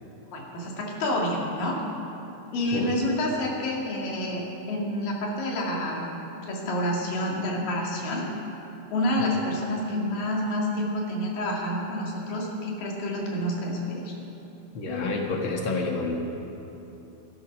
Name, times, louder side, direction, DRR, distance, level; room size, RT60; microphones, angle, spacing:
voice 1, 0.3-1.8 2.5-6.1 6.4-8.3 8.9-14.1, left 1 dB, 90° left, -2 dB, 3.8 m, -28 dB
voice 2, 14.7-16.2, left 3 dB, 50° left, 1 dB, 1.8 m, -28 dB
15.5 x 13.5 x 6.1 m, 3.0 s
omnidirectional pair, 3.8 m